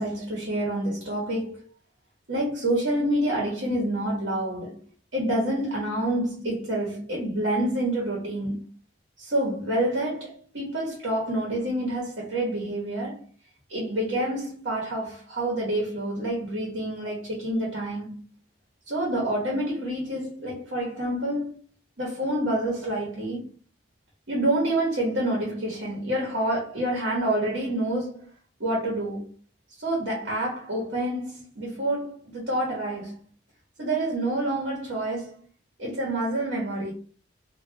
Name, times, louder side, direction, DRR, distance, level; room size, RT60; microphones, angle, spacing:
voice 1, 0.0-1.7 2.3-4.8 5.1-8.7 9.2-13.2 13.7-18.2 18.9-21.5 22.0-23.4 24.3-28.3 28.6-29.3 29.8-33.2 33.8-35.4 35.8-36.9, right 1 dB, 70° right, 1.2 m, -28 dB
2.8 x 2.5 x 3.3 m
head